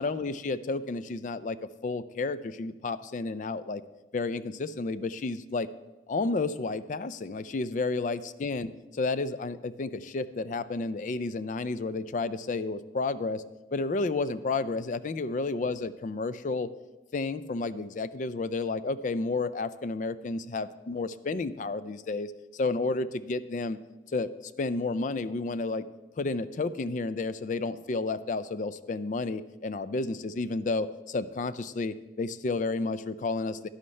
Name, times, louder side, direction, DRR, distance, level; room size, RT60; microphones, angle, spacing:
voice 1, 0.0-1.6 1.8-3.8 4.1-5.7 6.1-13.4 13.7-16.7 17.1-23.8 24.1-24.3 24.6-25.9 26.2-33.7, left 3 dB, 45° left, 14 dB, 0.3 m, -31 dB
11.5 x 11.0 x 3.2 m, 1.1 s
head